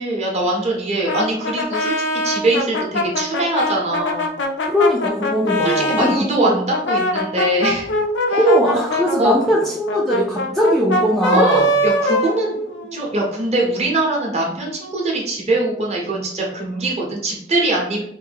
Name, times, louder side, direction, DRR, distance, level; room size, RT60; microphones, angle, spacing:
voice 1, 0.0-4.3 5.6-7.9 8.3-8.4 8.9-9.3 11.3-12.6 12.9-18.0, right 2 dB, 35° right, -2 dB, 0.8 m, -22 dB
Brass instrument, 1.0-6.2 6.7-13.0, left 1 dB, 80° left, 0.5 m, -22 dB
voice 2, 4.7-6.6 8.3-11.7, equal, ahead, -4 dB, 0.3 m, -19 dB
3.3 x 2.6 x 3.4 m, 0.70 s
head